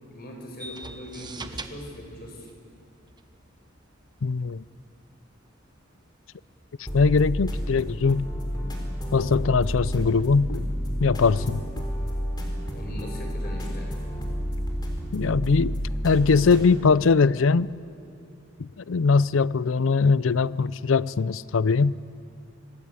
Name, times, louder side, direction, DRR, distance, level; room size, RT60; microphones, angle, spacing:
voice 1, 0.0-2.5 12.7-14.1 17.9-18.2, left 1 dB, 50° left, 1 dB, 5.5 m, -41 dB
sound 1, 0.6-8.0, right 2 dB, 20° right, 1.1 m, -44 dB
voice 2, 4.2-4.6 6.9-8.3 9.1-10.7 11.0-11.6 15.1-17.7 18.6-22.0, left 4 dB, 75° left, 19 dB, 0.5 m, -21 dB
sound 2, 6.9-16.6, equal, 20° left, 4.2 m, -30 dB
26.0 x 20.0 x 8.4 m, 2.4 s
head